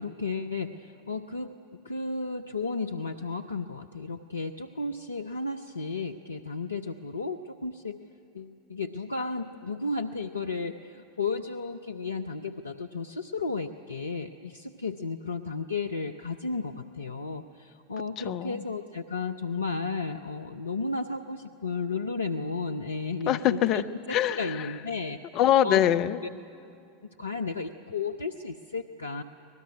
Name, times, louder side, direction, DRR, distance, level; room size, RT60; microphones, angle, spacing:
voice 1, 0.0-1.5 1.8-8.0 8.3-24.0 24.3-25.2 25.6-25.8 27.2-29.2, left 4 dB, 85° left, 7 dB, 0.7 m, -33 dB
voice 2, 18.2-18.6 23.3-24.7 25.3-26.2, left 11 dB, 45° left, 12 dB, 0.9 m, -24 dB
25.0 x 19.0 x 9.7 m, 2.5 s
figure-of-eight pair, 80°, 0 cm